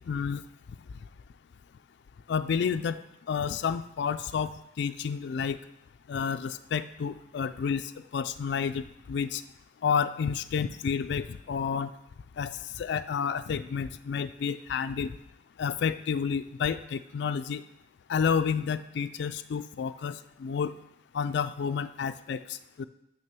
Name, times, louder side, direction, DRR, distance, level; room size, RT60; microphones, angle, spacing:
voice 1, 0.0-0.5 2.3-5.6 6.1-9.4 9.8-11.9 12.4-15.2 15.6-17.6 18.1-20.7 21.1-22.8, left 6 dB, 65° left, 11 dB, 0.3 m, -30 dB
6.7 x 6.2 x 5.9 m, 0.82 s
head